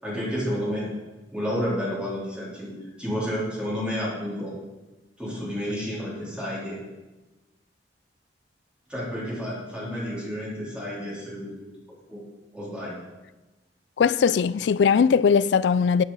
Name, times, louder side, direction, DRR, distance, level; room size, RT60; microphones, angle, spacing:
voice 1, 0.0-0.9 1.3-4.5 5.2-6.8 8.9-11.5 12.1-12.2 12.5-13.0, equal, 5° right, 3.6 m, -30 dB
voice 2, 14.0-16.0, left 6 dB, 75° left, 0.3 m, -20 dB
11.5 x 9.9 x 4.0 m
head